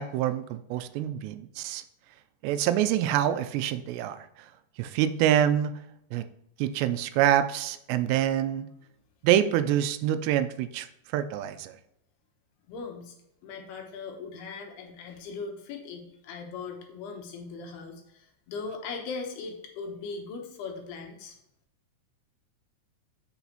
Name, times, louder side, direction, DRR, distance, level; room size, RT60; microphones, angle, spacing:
voice 1, 0.0-1.8 2.4-4.3 4.8-5.7 6.1-6.3 6.6-8.7 9.2-10.9 11.1-11.7, right 11 dB, 90° right, 11 dB, 2.7 m, -26 dB
voice 2, 12.7-13.1 13.4-21.4, left 4 dB, 75° left, 3 dB, 2.9 m, -39 dB
8.0 x 6.9 x 2.9 m, 0.78 s
omnidirectional pair, 4.8 m